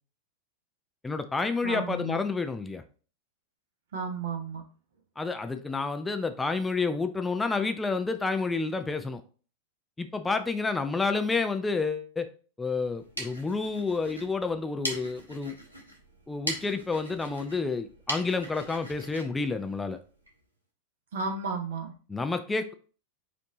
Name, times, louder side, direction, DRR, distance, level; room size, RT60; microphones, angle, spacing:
voice 1, 1.0-2.8 5.2-9.2 10.0-12.3 12.6-15.5 16.3-20.0 22.1-22.7, left 4 dB, 10° left, 7 dB, 0.4 m, -29 dB
voice 2, 1.6-2.2 3.9-4.6 21.1-21.9, right 5 dB, 60° right, 4 dB, 1.1 m, -33 dB
sound 1, 12.8-20.4, right 1 dB, 85° right, 1.2 m, -40 dB
5.3 x 2.6 x 3.7 m, 0.39 s
figure-of-eight pair, 90°, 0 cm